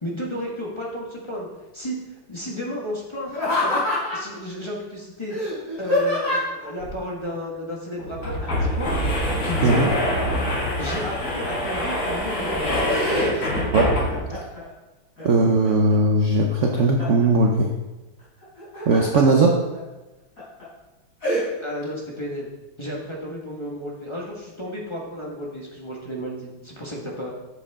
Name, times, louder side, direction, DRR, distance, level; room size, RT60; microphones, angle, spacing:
voice 1, 0.0-1.5 1.7-2.0 2.3-3.3 3.6-5.3 5.8-8.9 9.4-9.8 10.8-12.8 13.2-13.6 21.6-27.3, equal, 15° left, -3 dB, 1.3 m, -33 dB
Laughter, 3.3-4.4 5.3-6.7 8.4-8.9 9.2-10.8 11.4-12.0 12.4-13.7 14.1-14.7 15.2-15.9 16.4-17.3 18.4-19.2 19.7-19.8 20.4-20.6 21.2-21.4, left 1 dB, 40° left, 4.1 m, -27 dB
sound 1, 6.8-6.9 7.2-7.3 8.0-14.4, equal, 90° left, 4.2 m, -25 dB
voice 2, 15.2-17.7 18.9-19.6, right 2 dB, 70° right, 2 dB, 0.7 m, -18 dB
9.9 x 7.6 x 3.7 m, 1.1 s
omnidirectional pair, 2.3 m